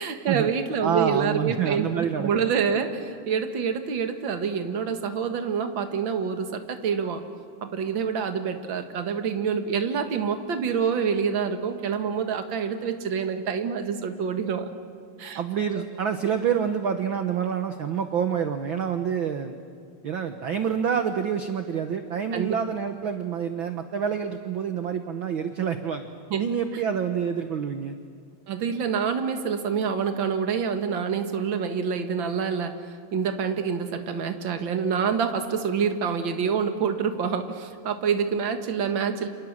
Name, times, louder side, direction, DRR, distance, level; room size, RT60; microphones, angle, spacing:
voice 1, 0.0-7.2 7.6-14.7 15.2-15.4 22.3-22.5 26.3-26.4 28.5-32.7 33.1-39.3, right 6 dB, 45° right, 7 dB, 2.0 m, -27 dB
voice 2, 0.8-2.3 15.3-19.5 20.0-26.1 26.4-28.0, right 7 dB, 65° right, 8 dB, 1.2 m, -27 dB
29.5 x 27.0 x 7.5 m, 2.2 s
omnidirectional pair, 3.6 m